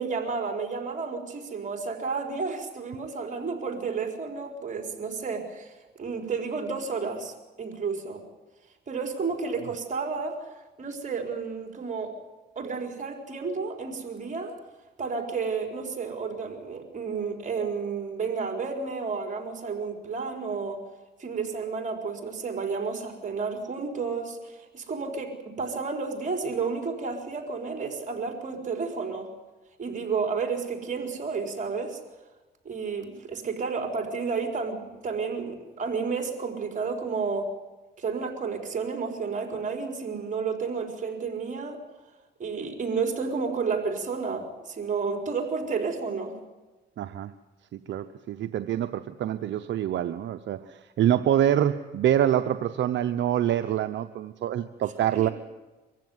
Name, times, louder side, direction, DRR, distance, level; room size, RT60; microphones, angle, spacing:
voice 1, 0.0-5.7 6.0-8.2 8.9-10.4 10.8-12.1 12.5-14.6 15.0-20.8 21.2-29.3 29.8-32.0 32.6-37.5 38.0-41.8 42.4-46.4 55.1-55.3, right 5 dB, 40° right, 3 dB, 4.6 m, -31 dB
voice 2, 47.0-47.3 47.7-55.3, right 11 dB, 70° right, 9 dB, 0.8 m, -26 dB
24.0 x 15.5 x 9.5 m, 1.2 s
cardioid pair, 90°, 20 cm